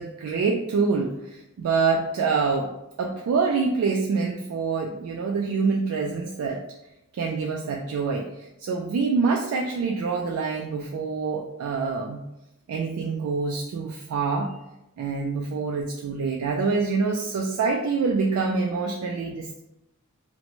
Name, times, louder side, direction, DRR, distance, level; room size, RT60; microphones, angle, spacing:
voice 1, 0.0-2.7 3.0-6.6 7.1-12.2 12.7-14.5 15.0-19.6, right 4 dB, 75° right, 1 dB, 0.3 m, -26 dB
2.5 x 2.1 x 2.9 m, 0.91 s
head